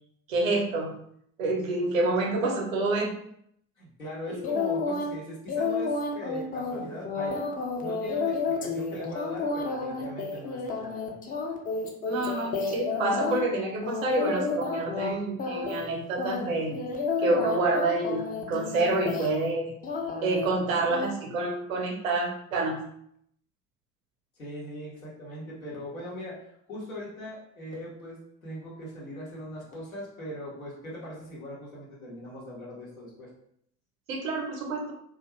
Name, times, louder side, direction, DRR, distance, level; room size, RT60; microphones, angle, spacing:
voice 1, 0.3-0.9 1.4-3.1 4.3-4.4 12.1-16.8 17.2-19.7 20.2-22.9 34.1-34.9, right 2 dB, 75° right, 1 dB, 0.7 m, -28 dB
voice 2, 3.8-7.5 7.8-11.1 24.4-33.3, left 1 dB, 85° left, -5 dB, 0.9 m, -40 dB
sound 1, 4.4-5.1 5.5-13.4 13.8-15.1 15.4-15.9 16.2-19.5 19.8-20.5 20.9-21.1, left 4 dB, 20° left, 0.4 m, -31 dB
2.3 x 2.2 x 3.0 m, 0.70 s
figure-of-eight pair, 55°, 41 cm